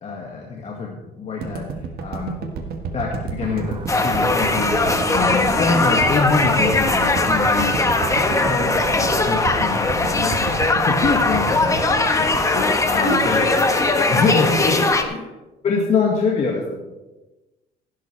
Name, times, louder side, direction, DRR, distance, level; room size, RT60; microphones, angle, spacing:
voice 1, 0.0-1.7 2.0-2.4 2.9-4.8 5.2-7.8 8.5-12.4 12.8-13.4 14.1-14.8 15.0-15.2 15.6-16.8, left 4 dB, 40° left, -1 dB, 1.8 m, -25 dB
sound 1, 1.4-13.6, right 5 dB, 65° right, 1.7 m, -30 dB
sound 2, 3.4-9.3, right 5 dB, 30° right, 0.8 m, -35 dB
sound 3, 3.9-15.0, left 3 dB, 20° left, 1.3 m, -20 dB
voice 2, 5.1-5.6 12.5-15.2, left 2 dB, 65° left, -1 dB, 4.6 m, -28 dB
15.5 x 11.5 x 3.3 m, 1.1 s
cardioid pair, 110°, 17 cm